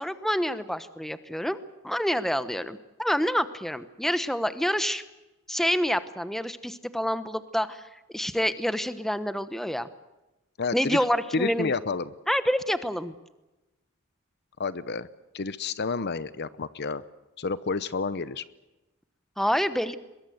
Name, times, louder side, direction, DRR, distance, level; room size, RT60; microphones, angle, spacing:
voice 1, 0.0-1.6 1.8-5.0 5.5-9.9 10.7-11.7 12.3-13.1 19.4-20.0, equal, ahead, 12 dB, 1.0 m, -27 dB
voice 2, 10.6-11.0 11.3-12.1 14.6-15.1 15.3-17.0 17.4-18.4, left 4 dB, 55° left, 15 dB, 0.8 m, -30 dB
23.0 x 22.5 x 7.9 m, 1.0 s
head